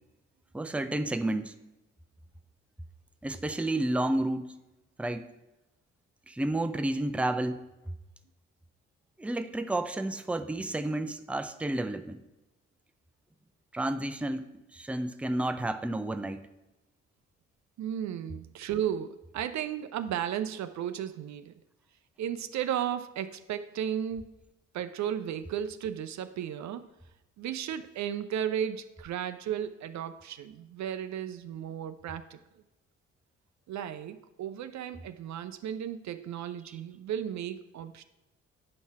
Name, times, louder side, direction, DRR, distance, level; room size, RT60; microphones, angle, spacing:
voice 1, 0.5-1.5 3.2-4.6 5.0-5.3 6.3-7.6 9.2-12.2 13.7-16.4, right 1 dB, 5° right, 9 dB, 0.6 m, -31 dB
voice 2, 17.8-21.6 22.2-24.3 24.7-26.8 27.4-32.4 33.7-38.0, right 9 dB, 50° right, 11 dB, 0.5 m, -34 dB
8.7 x 5.5 x 4.6 m, 0.98 s
hypercardioid pair, 40°, 36 cm